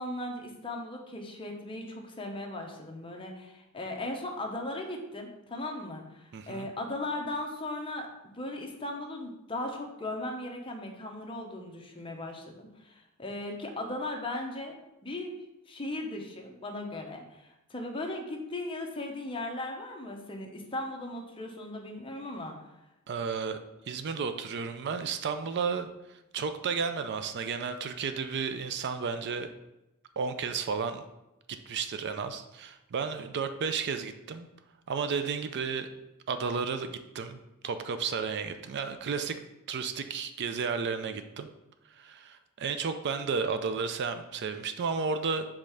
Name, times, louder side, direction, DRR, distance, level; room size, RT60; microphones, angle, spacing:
voice 1, 0.0-8.1 8.3-14.8 15.0-15.3 15.7-22.7, left 1 dB, 25° left, 1 dB, 0.9 m, -37 dB
voice 2, 6.3-6.7 23.1-23.6 23.9-25.9 26.3-29.5 30.2-31.0 31.7-34.5 34.9-35.9 36.3-39.4 39.7-41.5 41.9-45.5, right 5 dB, 50° right, 9 dB, 0.4 m, -32 dB
5.2 x 3.6 x 5.6 m, 0.93 s
head